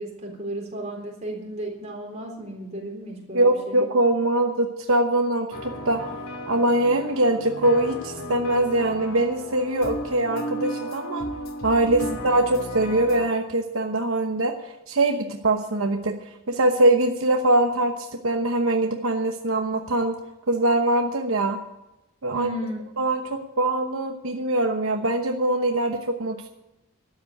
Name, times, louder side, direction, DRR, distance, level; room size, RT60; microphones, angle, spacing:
voice 1, 0.0-3.8 11.9-12.1 22.3-22.8, right 1 dB, 30° right, 0 dB, 3.8 m, -34 dB
voice 2, 3.3-6.0 6.5-11.3 11.6-16.2 16.5-20.1 20.5-21.6 22.2-22.5 23.0-26.5, right 2 dB, 70° right, 4 dB, 1.0 m, -23 dB
sound 1, 5.5-13.3, equal, 75° left, 2.4 m, -34 dB
12.5 x 8.2 x 9.2 m, 0.94 s
head